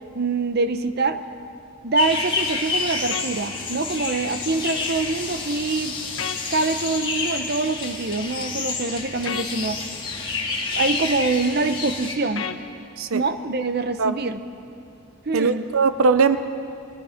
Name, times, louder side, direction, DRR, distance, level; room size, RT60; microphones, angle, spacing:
voice 1, 0.1-1.2 1.8-6.0 6.5-9.8 10.8-12.5 13.1-14.4 15.3-15.6, right 3 dB, 50° right, 10 dB, 0.8 m, -24 dB
sound 1, 2.0-12.1, left 4 dB, 25° left, 1.9 m, -29 dB
sound 2, 3.1-3.3 6.2-6.4 9.3-9.5 12.4-12.6, left 7 dB, 70° left, 1.0 m, -30 dB
voice 2, 15.3-16.4, right 4 dB, 80° right, 11 dB, 0.6 m, -19 dB
29.0 x 23.0 x 4.4 m, 2.5 s
head